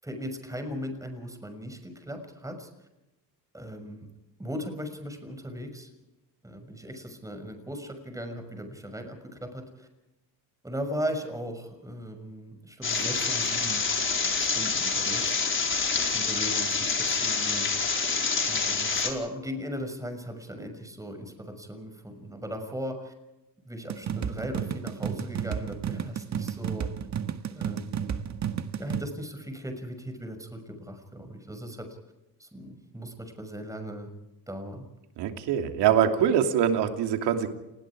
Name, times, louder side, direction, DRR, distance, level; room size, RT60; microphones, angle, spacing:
voice 1, 0.0-2.7 3.5-4.1 4.4-5.9 6.4-9.9 10.6-13.9 14.3-15.5 16.0-17.7 18.4-23.1 23.7-26.9 27.6-28.2 28.8-31.9 32.4-34.1 34.5-34.9, equal, 10° right, 6 dB, 6.2 m, -38 dB
sound 1, 12.8-19.1, left 4 dB, 30° left, 4.7 m, -27 dB
sound 2, 23.9-29.1, right 8 dB, 40° right, 1.7 m, -32 dB
voice 2, 35.2-37.5, right 9 dB, 80° right, 6 dB, 3.1 m, -24 dB
30.0 x 20.5 x 4.9 m, 0.96 s
cardioid pair, 105°, 40 cm